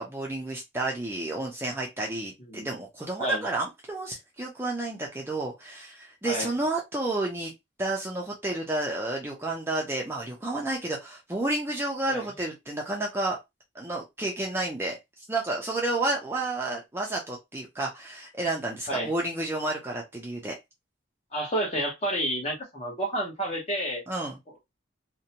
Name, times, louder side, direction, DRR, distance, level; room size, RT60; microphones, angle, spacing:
voice 1, 0.0-7.5 7.8-13.4 13.7-20.5 24.1-24.4, right 2 dB, 10° right, 0.4 m, -31 dB
voice 2, 21.3-24.0, right 1 dB, 30° left, 1.0 m, -30 dB
2.6 x 2.1 x 2.8 m
head